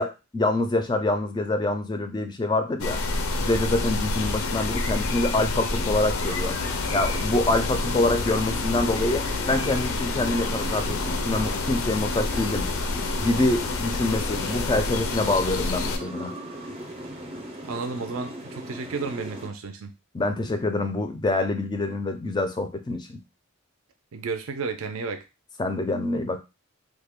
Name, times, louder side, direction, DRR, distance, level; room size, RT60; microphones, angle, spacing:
voice 1, 0.0-3.0 3.4-6.5 6.9-12.7 13.2-16.3 20.1-23.2 25.6-26.4, left 2 dB, 20° left, 7 dB, 0.4 m, -26 dB
sound 1, 2.8-16.0, left 3 dB, 80° left, 0.5 m, -28 dB
sound 2, 6.3-19.5, right 1 dB, 25° right, 0.6 m, -38 dB
voice 2, 17.7-19.9 24.1-25.2, right 4 dB, 75° right, 7 dB, 0.5 m, -32 dB
3.2 x 2.1 x 3.5 m, 0.27 s
head